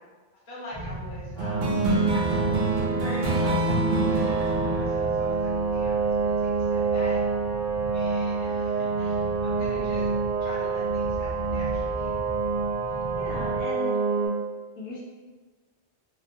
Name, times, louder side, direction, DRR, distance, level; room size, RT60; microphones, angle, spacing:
voice 1, 0.5-2.5 2.8-7.2 7.9-10.1 10.4-12.1, left 1 dB, 35° left, -8 dB, 0.6 m, -43 dB
sound 1, 0.7-13.6, right 1 dB, 35° right, 0.9 m, -39 dB
sound 2, 1.4-14.3, right 5 dB, 55° right, 1.2 m, -27 dB
sound 3, 1.4-6.3, right 1 dB, 85° right, 0.9 m, -27 dB
voice 2, 9.5-9.9 13.2-14.0 14.8-15.0, left 3 dB, 85° left, -2 dB, 0.9 m, -37 dB
2.7 x 2.1 x 2.8 m, 1.3 s
omnidirectional pair, 1.1 m